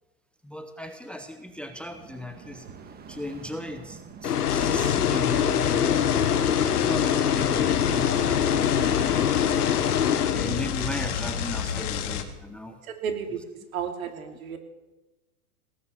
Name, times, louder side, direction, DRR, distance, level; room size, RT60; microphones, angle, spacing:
voice 1, 0.4-2.7 3.1-6.3 6.7-9.3 10.2-12.8, left 1 dB, ahead, 7 dB, 0.9 m, -37 dB
sound 1, 1.5-11.7, right 6 dB, 20° right, 1.7 m, -46 dB
sound 2, 4.2-10.9, left 8 dB, 85° left, 1.2 m, -24 dB
sound 3, 4.5-12.2, left 8 dB, 50° left, 2.0 m, -31 dB
voice 2, 12.9-13.4 13.7-14.6, right 7 dB, 65° right, 5 dB, 3.0 m, -32 dB
18.0 x 9.5 x 7.1 m, 1.1 s
hypercardioid pair, 115°, 45 cm